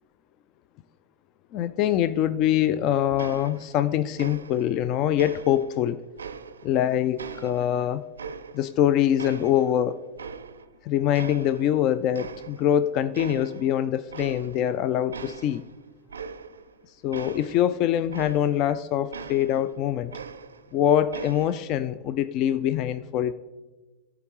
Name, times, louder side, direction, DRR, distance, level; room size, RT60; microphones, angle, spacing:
voice 1, 1.5-6.0 6.6-8.0 8.5-10.0 10.8-15.6 17.0-20.1 20.7-23.3, left 11 dB, 50° left, 13 dB, 0.3 m, -24 dB
sound 1, 3.2-3.9 4.2-4.8 5.2-6.8 7.2-8.8 9.2-10.8 11.1-11.8 12.1-12.8 13.1-13.7 14.1-14.8 15.1-18.7 19.1-20.8 21.1-21.7, right 5 dB, 85° right, 0.4 m, -41 dB
14.0 x 4.7 x 3.0 m, 1.2 s
hypercardioid pair, 90°, 0 cm